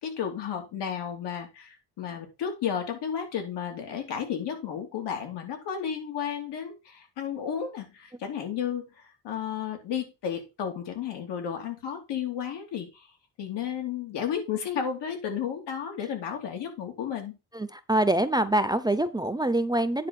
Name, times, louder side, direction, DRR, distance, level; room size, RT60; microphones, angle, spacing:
voice 1, 0.0-13.1 13.4-17.3, left 8 dB, 85° left, 3 dB, 3.0 m, -33 dB
voice 2, 17.5-20.1, right 1 dB, 10° right, 12 dB, 0.6 m, -25 dB
9.7 x 4.1 x 5.9 m, 0.27 s
cardioid pair, 120°, 40 cm